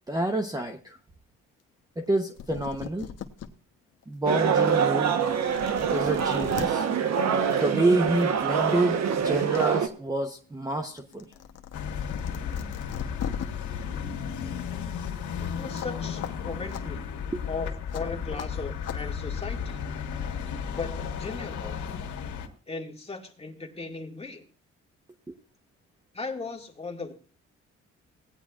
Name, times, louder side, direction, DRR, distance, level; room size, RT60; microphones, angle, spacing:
voice 1, 0.1-1.0 2.0-3.1 4.1-5.2 5.9-6.9 7.5-11.3 17.3-17.4 25.3-25.4, right 2 dB, 10° right, 5 dB, 1.0 m, -28 dB
sound 1, 2.4-3.5 4.0-4.1 5.0-5.1 5.4-6.7 8.0-8.2 8.6-9.6 10.0-13.5 15.7-15.9 16.2-16.3 16.7-16.8 17.9-18.0 18.4-18.5 18.8-19.0, left 8 dB, 55° left, 1.1 m, -38 dB
sound 2, 4.3-9.9, right 7 dB, 60° right, 1.1 m, -25 dB
sound 3, 11.7-22.5, left 7 dB, 75° left, 1.7 m, -34 dB
voice 2, 15.5-17.0 17.4-19.8 20.7-21.8 22.7-24.5 26.1-27.1, left 4 dB, 20° left, 2 dB, 2.1 m, -37 dB
18.0 x 9.9 x 2.5 m, 0.41 s
cardioid pair, 90°, 30 cm